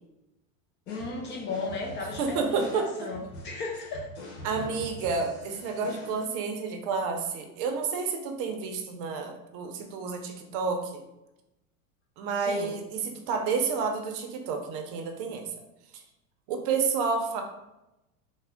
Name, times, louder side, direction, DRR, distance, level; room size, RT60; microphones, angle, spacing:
sound 1, 0.9-6.2, left 1 dB, 85° left, 1.0 m, -44 dB
voice 1, 0.9-4.1 12.4-12.8, left 3 dB, 30° left, 0 dB, 0.4 m, -35 dB
voice 2, 2.2-3.1 4.4-11.0 12.2-15.4 16.5-17.4, right 5 dB, 50° right, 4 dB, 0.6 m, -30 dB
3.4 x 2.1 x 3.4 m, 0.94 s
supercardioid pair, 120°, 41 cm